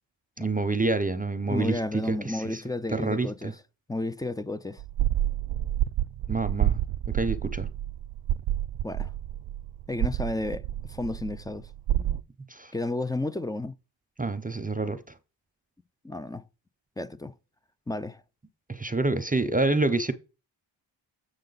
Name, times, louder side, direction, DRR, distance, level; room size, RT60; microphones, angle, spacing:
voice 1, 0.4-1.8 2.1-2.6 2.9-3.3 6.3-6.8 7.1-7.7 12.0-12.2 12.5-12.7 14.2-15.0 18.7-20.1, right 3 dB, 15° right, 0.7 m, -27 dB
voice 2, 1.5-3.6 3.9-4.8 8.8-9.1 9.9-11.7 12.7-13.7 16.0-16.5 17.0-17.3 17.9-18.2, left 2 dB, 10° left, 0.3 m, -32 dB
sound 1, 4.8-12.2, right 12 dB, 75° right, 0.5 m, -29 dB
7.4 x 6.4 x 4.0 m
cardioid pair, 75°, 48 cm